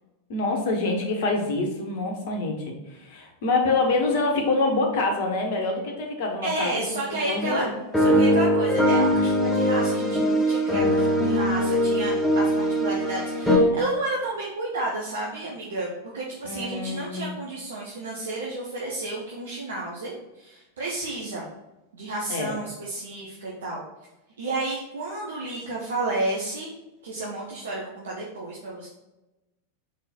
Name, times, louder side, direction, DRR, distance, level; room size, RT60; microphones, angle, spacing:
voice 1, 0.3-7.7 16.4-17.3 22.3-22.5, left 3 dB, 50° left, 2 dB, 1.4 m, -26 dB
voice 2, 6.4-7.6 7.9-15.9 16.1-21.4 21.9-23.8 24.4-26.7 27.0-28.9, right 2 dB, 65° right, -3 dB, 1.1 m, -31 dB
sound 1, 7.4-7.5 7.9-13.6, equal, 5° left, 1.6 m, -21 dB
6.0 x 4.1 x 4.4 m, 1.0 s
figure-of-eight pair, 90°, 0 cm